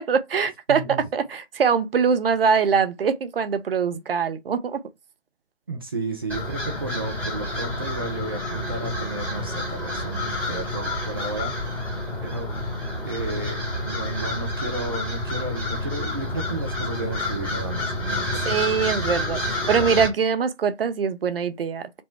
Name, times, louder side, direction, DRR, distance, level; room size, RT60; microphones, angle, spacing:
voice 1, 0.0-0.8 1.1-4.8 18.5-22.0, right 6 dB, 50° right, 0.7 m, -23 dB
voice 2, 0.7-1.0 3.9-4.0 5.7-11.9 12.2-12.8 13.0-18.7 19.4-19.8, right 3 dB, 20° right, 0.4 m, -33 dB
sound 1, 6.3-20.1, left 1 dB, 5° left, 1.2 m, -29 dB
4.3 x 2.1 x 4.4 m
figure-of-eight pair, 140°, 36 cm